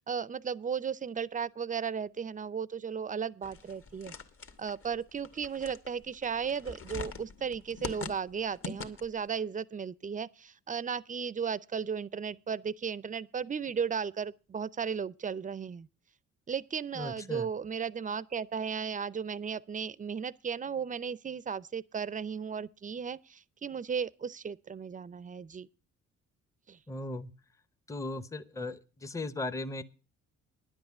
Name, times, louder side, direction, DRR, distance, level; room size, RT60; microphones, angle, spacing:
voice 1, 0.1-4.1 4.6-15.9 16.5-25.7 26.7-26.8, right 6 dB, 25° right, 0.5 m, -35 dB
sound 1, 3.4-9.3, left 4 dB, 45° left, 1.6 m, -43 dB
voice 2, 17.0-17.5 26.9-27.3 27.9-29.8, left 2 dB, 10° left, 0.8 m, -37 dB
10.5 x 8.0 x 7.2 m
cardioid pair, 90°, 30 cm